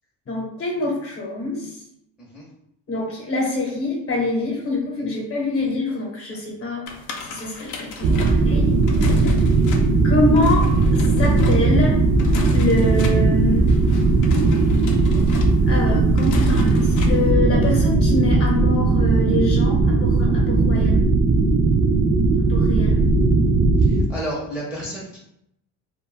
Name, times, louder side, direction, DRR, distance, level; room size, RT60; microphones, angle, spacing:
voice 1, 0.3-1.8 2.9-6.8 7.3-8.8 10.0-10.7 11.2-12.0 12.5-13.6 15.7-21.0 22.4-23.0, left 2 dB, 35° left, -2 dB, 0.9 m, -25 dB
sound 1, 6.9-17.3, left 3 dB, 55° left, 0.5 m, -31 dB
sound 2, 8.0-24.0, right 3 dB, 45° right, 0.4 m, -18 dB
voice 2, 23.8-25.2, right 1 dB, 5° right, -6 dB, 0.6 m, -31 dB
2.2 x 2.0 x 3.2 m, 0.75 s
cardioid pair, 110°, 37 cm